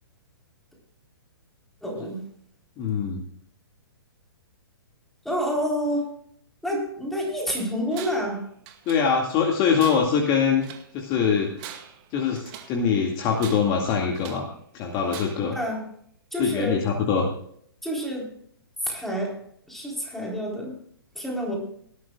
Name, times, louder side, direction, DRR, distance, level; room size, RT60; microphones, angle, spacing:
voice 1, 1.8-2.2 5.2-6.1 6.6-8.4 15.5-15.8 16.3-16.8 17.8-18.3 18.8-19.4 19.7-20.8 21.1-21.5, equal, ahead, -2 dB, 3.9 m, -28 dB
voice 2, 2.8-3.2 8.9-10.6 10.9-11.5 12.1-14.5 14.7-15.6 16.4-17.3, left 6 dB, 30° left, 1 dB, 2.1 m, -23 dB
Tools, 7.9-8.4 8.7-9.4 9.7-10.9 11.4-12.8 13.4-14.5 15.1-15.6, right 10 dB, 35° right, 2.1 m, -43 dB
18.5 x 12.5 x 2.4 m, 0.63 s
figure-of-eight pair, 125°, 13 cm